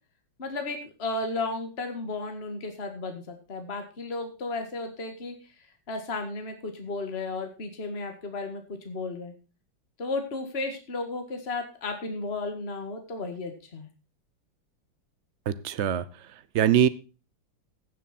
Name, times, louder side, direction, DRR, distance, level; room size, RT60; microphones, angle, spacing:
voice 1, 0.4-5.3 5.9-9.3 10.0-13.9, left 3 dB, 35° left, 5 dB, 2.0 m, -34 dB
voice 2, 15.5-16.0 16.5-16.9, right 9 dB, 70° right, 16 dB, 0.6 m, -22 dB
15.5 x 7.5 x 4.2 m, 0.33 s
omnidirectional pair, 2.1 m